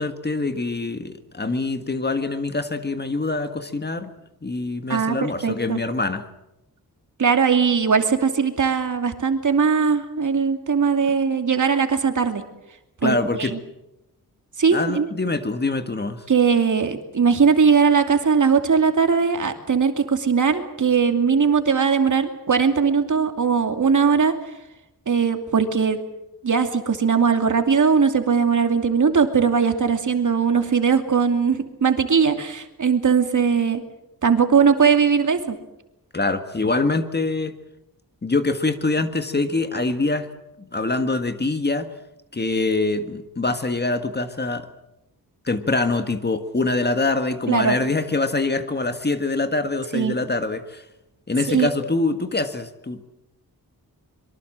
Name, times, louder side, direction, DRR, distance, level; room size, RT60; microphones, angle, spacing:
voice 1, 0.0-4.1 4.4-6.2 13.0-13.5 14.7-16.2 36.1-37.5 38.2-40.3 40.6-41.9 42.3-44.7 45.4-50.8 51.3-53.1, left 3 dB, 25° left, 9 dB, 1.7 m, -24 dB
voice 2, 5.4-5.8 7.2-12.4 13.0-13.6 14.6-15.1 16.3-24.3 25.1-26.0 26.4-33.8 34.2-35.6 47.5-47.8 49.9-50.2 51.5-51.7, right 6 dB, 55° right, 6 dB, 2.7 m, -19 dB
25.0 x 23.5 x 7.7 m, 0.89 s
wide cardioid pair, 130°, 37 cm